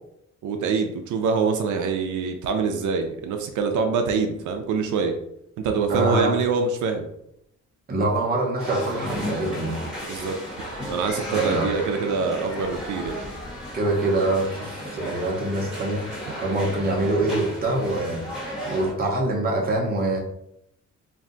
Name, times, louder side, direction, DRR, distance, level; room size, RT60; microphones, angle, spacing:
voice 1, 0.4-5.2 5.6-7.1 10.1-10.4 10.9-13.2, right 5 dB, 85° right, 4 dB, 0.5 m, -25 dB
voice 2, 5.9-6.4 7.9-9.8 11.3-11.7 13.7-16.0 16.4-18.2 18.6-20.2, right 2 dB, 30° right, -2 dB, 0.7 m, -24 dB
sound 1, 8.6-18.9, equal, ahead, 1.0 m, -34 dB
2.6 x 2.2 x 3.7 m, 0.76 s
cardioid pair, 160°, 30 cm